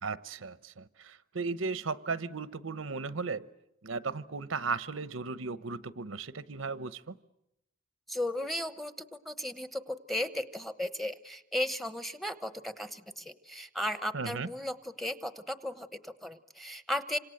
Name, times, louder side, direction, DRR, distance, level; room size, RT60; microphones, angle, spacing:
voice 1, 0.0-3.5 3.8-7.1 14.1-14.5, right 4 dB, 85° right, 15 dB, 0.9 m, -36 dB
voice 2, 8.1-17.2, left 1 dB, ahead, 12 dB, 1.0 m, -35 dB
27.0 x 26.0 x 7.8 m, 0.83 s
head